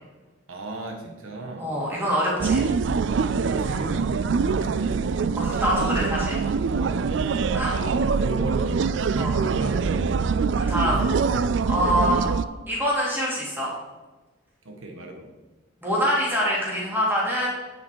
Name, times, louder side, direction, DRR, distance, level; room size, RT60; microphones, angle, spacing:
voice 1, 0.5-1.8 2.3-2.8 3.2-5.3 6.7-7.2 7.7-11.1 14.6-15.3, right 2 dB, 85° right, 2 dB, 1.5 m, -35 dB
voice 2, 1.6-2.6 5.4-6.4 7.5-7.7 9.2-9.3 10.6-11.0 11.7-12.3 12.7-13.7 15.8-17.5, equal, 10° right, -5 dB, 3.0 m, -25 dB
sound 1, 2.4-12.4, right 5 dB, 60° right, 0.4 m, -24 dB
9.2 x 7.7 x 4.7 m, 1.2 s
head